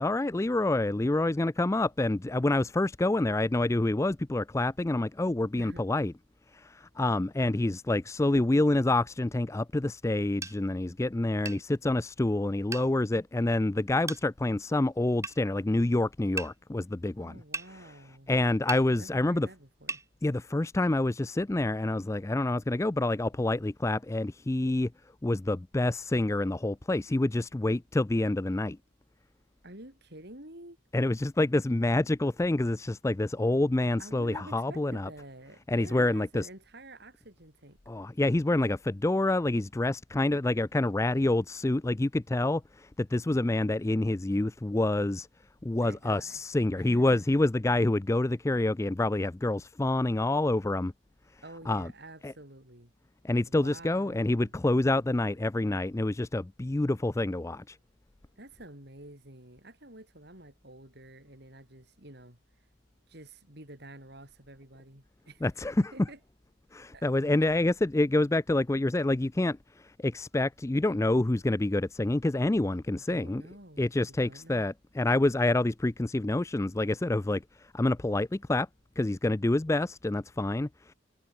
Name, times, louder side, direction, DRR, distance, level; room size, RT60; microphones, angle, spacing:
voice 1, 0.0-6.1 6.5-17.4 18.3-19.5 20.2-24.9 25.2-28.8 30.9-35.1 35.7-36.5 37.9-45.3 45.6-50.9 51.7-51.9 52.2-52.3 53.2-57.8 65.4-65.9 66.7-73.4 73.8-78.7 79.0-80.9, left 2 dB, 15° left, 0.4 m, -27 dB
voice 2, 5.6-5.9 17.2-18.3 19.0-20.0 29.6-30.8 34.0-37.8 45.8-46.4 46.7-47.2 51.4-52.9 53.5-54.5 58.4-62.4 63.1-65.5 65.9-66.2 66.9-67.1 72.9-74.7, right 1 dB, 55° right, 6.0 m, -49 dB
sound 1, 10.4-10.6 11.5-11.6 12.7-12.9 14.1-14.2 15.2-15.4 16.4-16.5 17.5-17.7 18.7-18.9 19.9-20.1, right 4 dB, 15° right, 2.3 m, -35 dB
head